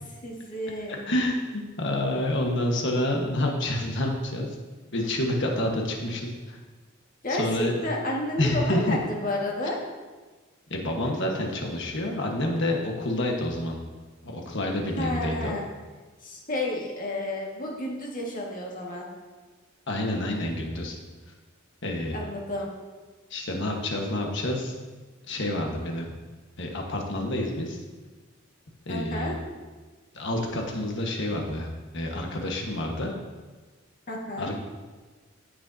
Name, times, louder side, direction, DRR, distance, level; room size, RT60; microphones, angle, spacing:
voice 1, 0.2-1.1 7.2-9.8 15.0-15.7 16.2-19.1 22.1-22.7 28.9-29.4 34.1-34.5, left 1 dB, 45° left, -2 dB, 1.8 m, -31 dB
voice 2, 0.9-4.5 4.9-6.6 7.3-7.7 8.4-9.0 10.7-13.8 14.2-15.6 19.9-20.9 21.8-22.2 23.3-24.7 25.3-26.1 26.6-27.8 28.8-29.4 30.1-31.7 31.9-33.1 34.4-34.5, left 1 dB, 65° left, 1 dB, 1.4 m, -28 dB
15.5 x 6.3 x 2.8 m, 1.3 s
head